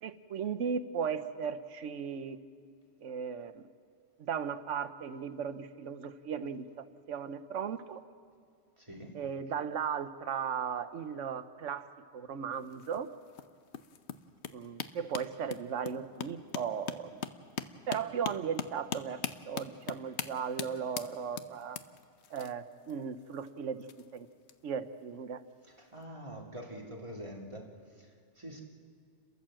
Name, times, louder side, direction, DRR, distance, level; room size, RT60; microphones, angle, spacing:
voice 1, 0.0-2.4 3.0-3.7 4.2-8.0 9.1-11.9 12.1-13.1 14.5-17.2 17.9-21.8 22.3-23.8 24.1-24.3 24.6-25.4, right 7 dB, 80° right, 11 dB, 1.2 m, -36 dB
voice 2, 8.8-9.2 25.6-28.6, equal, 25° right, 0 dB, 2.3 m, -46 dB
sound 1, 12.5-24.5 25.5-25.7 26.0-26.1, left 8 dB, 70° left, 1.1 m, -41 dB
30.0 x 13.5 x 7.6 m, 2.1 s
omnidirectional pair, 1.2 m